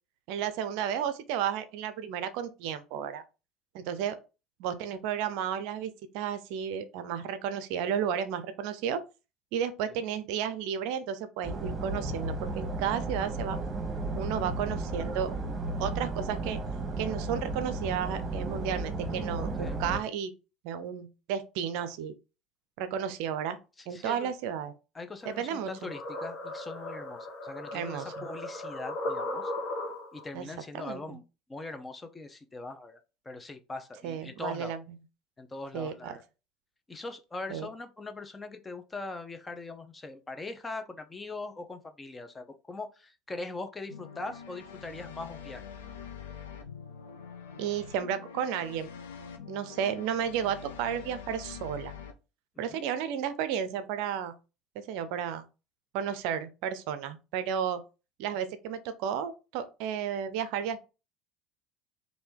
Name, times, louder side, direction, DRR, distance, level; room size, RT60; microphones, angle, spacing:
voice 1, 0.3-3.2 3.7-4.2 4.6-9.0 9.5-13.6 14.1-15.3 15.8-16.6 17.0-20.3 20.6-22.1 22.8-23.6 23.9-24.7 25.3-25.7 27.7-28.3 30.3-30.5 30.7-31.2 34.0-34.8 35.7-36.2 37.5-37.7 47.6-48.9 49.5-51.9 52.6-54.3 54.8-55.4 55.9-57.8 58.2-60.8, right 8 dB, 65° right, 0.5 m, -33 dB
sound 1, 11.4-20.0, right 2 dB, 35° right, 1.0 m, -34 dB
voice 2, 23.9-24.3 24.9-29.5 30.1-31.2 31.5-33.0 33.2-34.8 35.4-36.2 36.9-45.6 52.6-52.8, left 3 dB, 20° left, 0.7 m, -41 dB
sound 2, 25.2-30.3, left 1 dB, 55° left, 1.1 m, -37 dB
sound 3, 43.9-52.1, left 7 dB, 80° left, 0.6 m, -45 dB
3.3 x 2.6 x 4.5 m
figure-of-eight pair, 65°, 0 cm